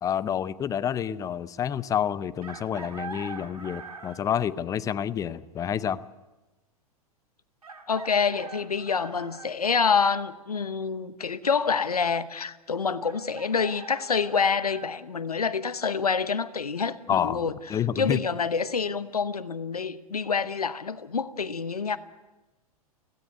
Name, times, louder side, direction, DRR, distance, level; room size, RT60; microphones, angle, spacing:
voice 1, 0.0-6.0 17.1-17.4 17.7-18.2, left 9 dB, 15° left, 0.6 m, -28 dB
Chicken rooster, 2.4-4.4 6.0-6.1 7.6-9.5 13.0-14.9, right 4 dB, 75° right, 1.9 m, -43 dB
voice 2, 7.9-22.0, left 5 dB, 80° left, 1.0 m, -27 dB
17.0 x 16.0 x 9.4 m
figure-of-eight pair, 100°, 19 cm